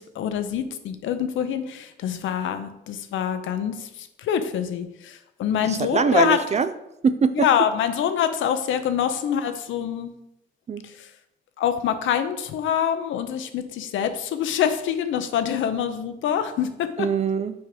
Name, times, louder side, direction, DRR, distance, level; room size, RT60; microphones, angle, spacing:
voice 1, 0.0-6.4 7.3-10.1 11.0-11.1 11.6-17.1, left 9 dB, 75° left, 10 dB, 0.7 m, -25 dB
voice 2, 5.5-6.7 7.0-7.5 10.7-10.9 17.0-17.5, right 5 dB, 35° right, 12 dB, 0.4 m, -22 dB
6.2 x 4.8 x 4.9 m, 0.86 s
cardioid pair, 90°, 20 cm